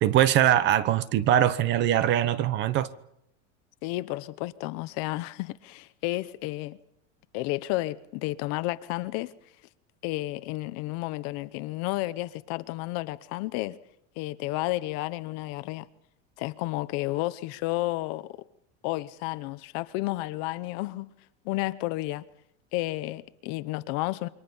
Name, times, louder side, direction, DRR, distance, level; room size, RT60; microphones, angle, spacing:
voice 1, 0.0-2.9, right 11 dB, 30° right, 0.9 m, -22 dB
voice 2, 3.8-6.8 7.3-9.3 10.0-13.8 14.2-15.9 16.4-18.5 18.8-21.1 21.4-22.3 22.7-24.3, left 18 dB, 45° left, 0.9 m, -31 dB
28.5 x 24.0 x 5.6 m
supercardioid pair, 175°, 36 cm